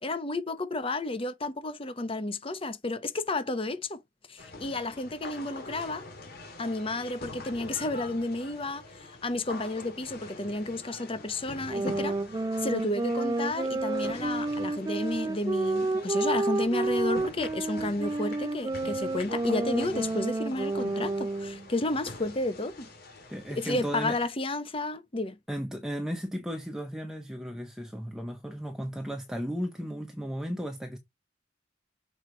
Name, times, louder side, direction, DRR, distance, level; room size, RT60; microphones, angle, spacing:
voice 1, 0.0-4.0 4.3-6.0 6.6-12.2 12.6-22.9 23.6-25.4, left 2 dB, 30° left, 0.8 m, -32 dB
sound 1, 4.4-24.3, left 2 dB, 55° left, 2.2 m, -45 dB
sound 2, 11.7-21.7, right 2 dB, 20° right, 0.3 m, -30 dB
voice 2, 23.3-24.1 25.5-31.0, equal, 5° right, 0.8 m, -35 dB
6.6 x 4.5 x 3.8 m
head